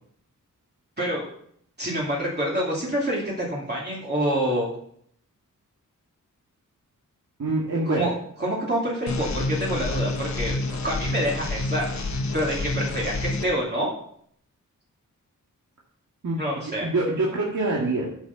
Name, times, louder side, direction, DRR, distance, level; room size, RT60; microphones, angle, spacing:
voice 1, 1.8-4.7 7.9-8.1 8.4-13.9 16.4-16.9, equal, 30° right, -5 dB, 2.7 m, -27 dB
voice 2, 7.4-8.1 16.2-18.1, right 2 dB, 60° right, -4 dB, 2.2 m, -25 dB
sound 1, 9.1-13.5, left 2 dB, 60° left, 1.2 m, -28 dB
11.0 x 6.6 x 5.9 m, 0.65 s
wide cardioid pair, 135°, 32 cm